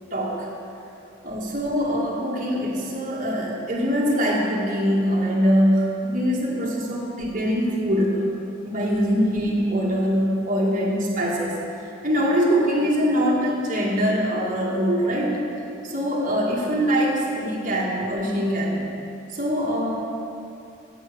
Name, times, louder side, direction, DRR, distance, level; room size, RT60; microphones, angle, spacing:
voice 1, 0.1-0.5 1.2-8.3 8.6-11.6 12.0-15.4 15.8-18.8 19.3-20.0, equal, 40° right, -5 dB, 1.8 m, -23 dB
9.3 x 6.3 x 6.8 m, 2.7 s
head